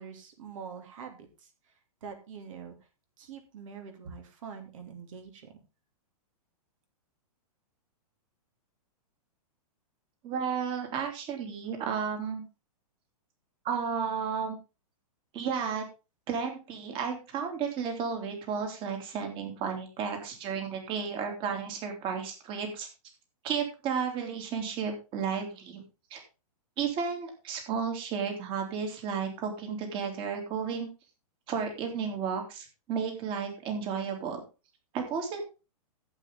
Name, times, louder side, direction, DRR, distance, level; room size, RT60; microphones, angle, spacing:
voice 1, 0.0-1.8 2.0-2.8 3.2-5.5, right 6 dB, 55° right, 5 dB, 2.7 m, -45 dB
voice 2, 10.2-12.4 13.6-14.6 15.3-15.8 16.3-22.9 23.4-25.8 26.1-26.2 26.8-30.9 31.5-34.4 34.9-35.4, right 6 dB, 25° right, 4 dB, 3.0 m, -33 dB
14.5 x 8.1 x 3.7 m, 0.31 s
hypercardioid pair, 155°, 20 cm